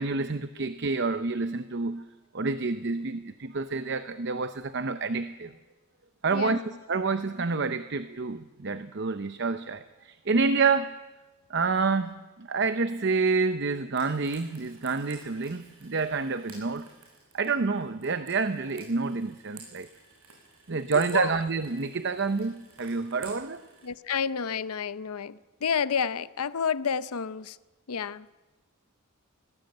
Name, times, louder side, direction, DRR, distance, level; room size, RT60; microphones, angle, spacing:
voice 1, 0.0-2.1 2.3-5.5 6.2-6.6 6.9-11.0 11.5-16.9 17.3-19.9 20.7-23.6, right 4 dB, 50° right, 0.7 m, -28 dB
voice 2, 6.3-6.8 20.9-21.4 23.8-27.6 27.9-28.3, left 6 dB, 85° left, 0.7 m, -30 dB
Frying (food), 13.9-23.9, right 4 dB, 80° right, 7.1 m, -52 dB
21.0 x 18.5 x 7.9 m
head